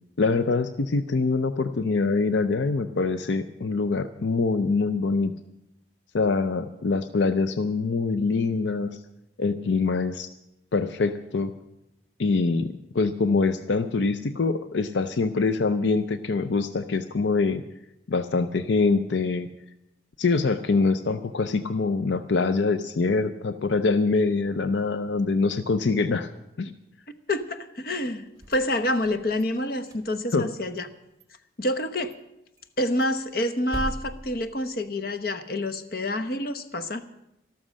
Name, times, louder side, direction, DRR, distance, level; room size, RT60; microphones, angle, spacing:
voice 1, 0.2-5.3 6.1-9.0 9.4-10.3 10.7-11.5 12.2-17.6 18.1-19.5 20.2-26.3 26.6-26.7 30.3-30.5, left 4 dB, 80° left, 12 dB, 0.6 m, -24 dB
voice 2, 27.3-30.9 31.6-32.1 32.8-37.0, left 1 dB, 55° left, 10 dB, 0.9 m, -28 dB
sound 1, 28.3-29.4 29.8-30.9 31.2-31.3 31.7-31.8 32.1-32.2 32.6-35.2, equal, 20° right, 1.3 m, -40 dB
13.0 x 12.5 x 6.3 m, 0.86 s
head